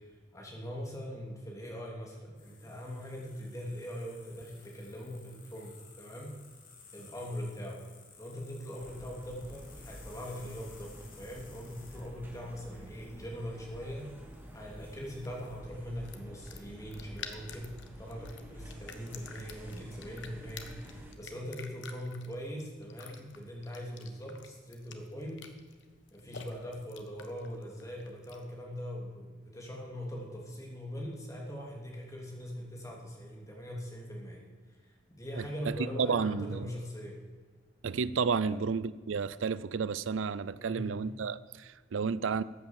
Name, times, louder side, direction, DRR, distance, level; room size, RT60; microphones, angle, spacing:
voice 1, 0.3-5.7 6.0-6.3 6.9-7.8 8.2-14.1 14.5-17.6 18.0-25.4 26.1-34.4 34.8-37.2 38.3-38.6 40.6-40.9, equal, 15° left, -2 dB, 3.0 m, -41 dB
sound 1, 2.3-15.6, left 5 dB, 45° left, 2.5 m, -58 dB
sound 2, 8.8-21.1, equal, 10° right, 1.6 m, -49 dB
sound 3, 14.3-28.6, left 6 dB, 70° left, 1.3 m, -51 dB
voice 2, 35.4-36.7 37.8-42.4, right 5 dB, 85° right, 18 dB, 0.5 m, -32 dB
14.0 x 8.9 x 7.3 m, 1.5 s
head